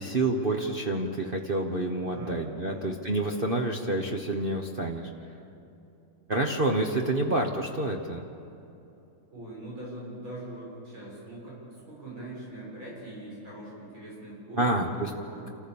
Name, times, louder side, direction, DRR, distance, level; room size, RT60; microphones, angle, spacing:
voice 1, 0.0-5.1 6.3-8.2 14.6-15.1, right 2 dB, 35° right, 0 dB, 0.9 m, -28 dB
voice 2, 2.0-2.9 7.1-7.3 9.3-15.5, right 1 dB, 75° right, -5 dB, 7.9 m, -42 dB
28.0 x 15.0 x 7.1 m, 2.8 s
omnidirectional pair, 2.2 m